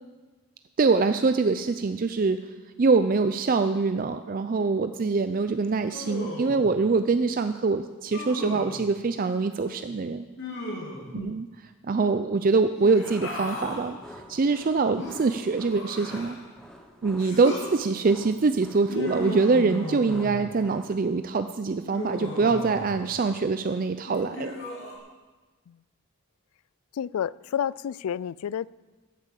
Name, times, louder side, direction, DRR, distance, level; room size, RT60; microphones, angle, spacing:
voice 1, 0.8-2.4 2.8-10.2 11.1-11.5 11.8-14.0 14.3-16.4 17.0-24.5, right 4 dB, 40° right, 10 dB, 0.4 m, -24 dB
Human voice, 5.9-6.7 8.1-8.8 10.4-11.2 12.7-13.9 15.0-16.5 17.2-17.7 18.9-20.5 21.9-23.1 24.1-25.0, left 1 dB, 55° left, 2.9 m, -36 dB
sound 1, 13.0-20.8, equal, 5° left, 1.0 m, -48 dB
voice 2, 26.9-28.7, left 8 dB, 80° left, 21 dB, 0.3 m, -30 dB
13.0 x 8.5 x 7.5 m, 1.3 s
head